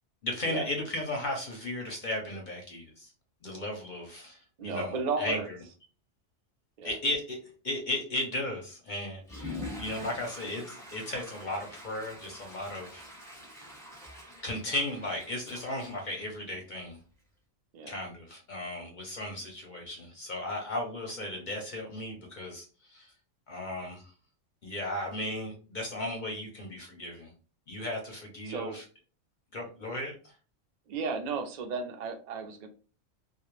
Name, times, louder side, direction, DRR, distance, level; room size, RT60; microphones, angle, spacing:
voice 1, 0.2-3.1 3.4-5.6 6.8-7.4 7.6-13.1 14.4-17.0 17.9-23.1 23.5-24.0 24.6-27.3 27.7-28.8 29.5-30.1, left 1 dB, 55° left, 1 dB, 0.6 m, -35 dB
voice 2, 4.6-5.5 6.8-6.9 9.5-9.7 17.7-18.0 28.5-28.8 30.9-32.7, right 4 dB, 75° right, 4 dB, 0.3 m, -34 dB
Water / Toilet flush, 9.2-16.9, left 2 dB, 5° left, 0.6 m, -45 dB
2.2 x 2.0 x 3.0 m, 0.36 s
omnidirectional pair, 1.3 m